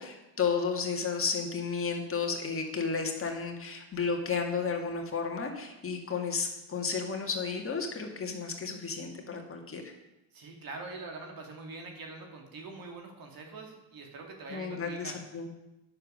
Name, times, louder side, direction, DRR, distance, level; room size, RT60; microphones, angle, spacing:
voice 1, 0.0-9.9 14.5-15.5, left 5 dB, 30° left, 2 dB, 2.0 m, -33 dB
voice 2, 10.3-15.2, right 3 dB, 55° right, 2 dB, 2.6 m, -44 dB
9.6 x 7.0 x 6.5 m, 0.97 s
cardioid pair, 95°, 42 cm